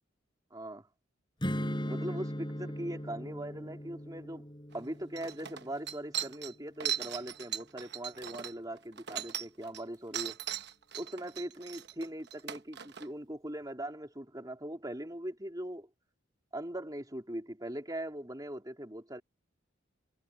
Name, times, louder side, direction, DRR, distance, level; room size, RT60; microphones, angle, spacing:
voice 1, 0.5-0.9 1.9-4.5 4.7-10.4 10.9-15.9 16.5-19.2, right 1 dB, 20° right, 3.4 m, -40 dB
Strum, 1.4-6.7, equal, 25° left, 5.3 m, -39 dB
sound 1, 4.7-4.8 5.2-9.8 10.1-13.1, right 10 dB, 55° right, 1.0 m, -38 dB
head